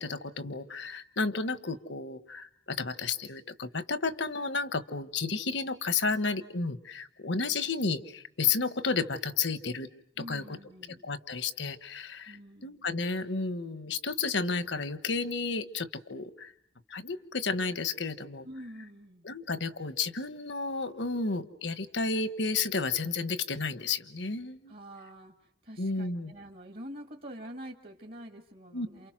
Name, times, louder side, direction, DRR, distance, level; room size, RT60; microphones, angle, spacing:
voice 1, 0.0-9.9 10.3-10.6 11.0-12.4 12.6-16.5 16.9-18.5 19.2-24.7 25.8-26.3 28.7-28.9, left 4 dB, 75° left, 12 dB, 1.3 m, -32 dB
voice 2, 10.2-11.0 12.3-12.9 18.4-19.3 24.7-29.1, equal, 50° right, 3 dB, 2.1 m, -46 dB
28.5 x 28.5 x 6.2 m, 0.65 s
head